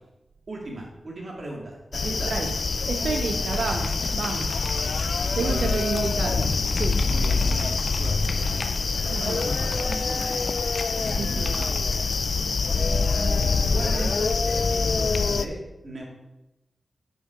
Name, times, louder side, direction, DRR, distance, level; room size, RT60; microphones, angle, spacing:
voice 1, 0.5-2.3 5.3-6.1 7.0-8.5 9.0-10.4 10.9-11.8 13.7-16.1, right 1 dB, 60° right, 2.3 m, -37 dB
sound 1, 1.9-15.5, left 4 dB, 70° left, 0.4 m, -25 dB
voice 2, 2.3-4.7 5.3-7.1 9.1-9.4 11.2-11.6, right 5 dB, 85° right, 0.4 m, -31 dB
sound 2, 3.5-11.8, left 2 dB, 55° left, 0.9 m, -41 dB
6.3 x 6.0 x 4.9 m
cardioid pair, 45°, 0 cm